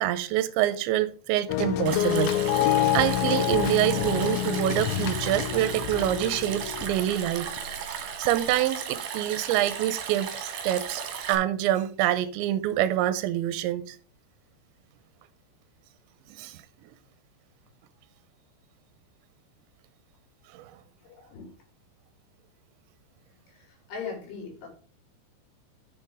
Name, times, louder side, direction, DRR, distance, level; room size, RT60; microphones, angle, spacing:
voice 1, 0.0-2.3 2.9-7.5 7.9-11.0 11.3-14.0 16.4-16.6 20.5-20.6, right 13 dB, 80° right, 2.9 m, -26 dB
sound 1, 1.5-7.7 8.3-8.4, left 12 dB, 80° left, 3.1 m, -27 dB
Stream, 1.9-11.4, right 7 dB, 60° right, 2.9 m, -36 dB
voice 2, 21.1-21.5 23.9-24.7, left 5 dB, 60° left, 5.0 m, -38 dB
7.4 x 6.9 x 4.8 m
omnidirectional pair, 5.4 m